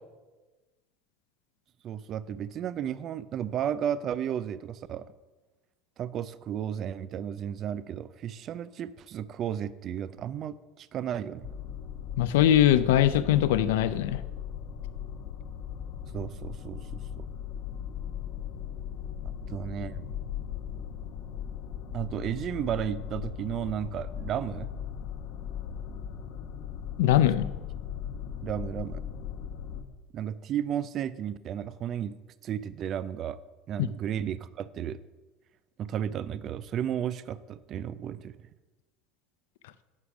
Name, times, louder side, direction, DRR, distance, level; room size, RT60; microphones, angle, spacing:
voice 1, 1.8-5.1 6.0-11.5 16.1-17.3 19.5-20.1 21.9-24.7 28.4-29.0 30.1-32.2 32.4-33.4 33.7-35.0 35.8-38.4, right 9 dB, 40° right, 16 dB, 0.4 m, -33 dB
sound 1, 11.4-29.8, left 8 dB, 65° left, 0.9 m, -38 dB
voice 2, 12.2-14.2 27.0-27.5 33.8-33.9, left 11 dB, 90° left, 14 dB, 0.4 m, -21 dB
9.7 x 5.1 x 5.9 m, 1.2 s
supercardioid pair, 135°, 0 cm